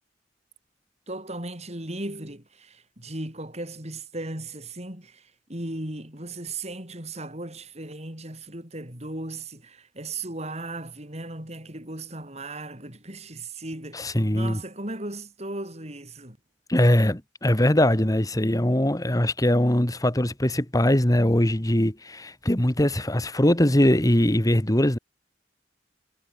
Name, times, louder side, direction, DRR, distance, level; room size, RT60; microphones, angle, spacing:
voice 1, 1.1-16.4, right 2 dB, 35° right, 7.2 m, -37 dB
voice 2, 13.9-14.6 16.7-25.0, left 1 dB, 20° left, 1.7 m, -21 dB
head